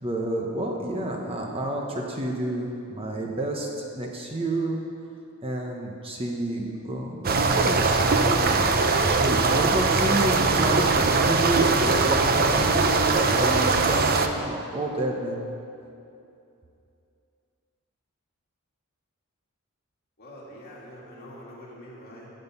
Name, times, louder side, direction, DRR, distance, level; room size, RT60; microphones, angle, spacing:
voice 1, 0.0-3.7 3.9-4.8 5.4-8.6 9.2-15.4, right 1 dB, 25° right, 0 dB, 1.0 m, -29 dB
sound 1, 7.2-14.3, right 3 dB, 45° right, 0.7 m, -21 dB
voice 2, 20.2-22.3, equal, 45° left, -6 dB, 3.1 m, -44 dB
16.0 x 7.8 x 5.5 m, 2.6 s
head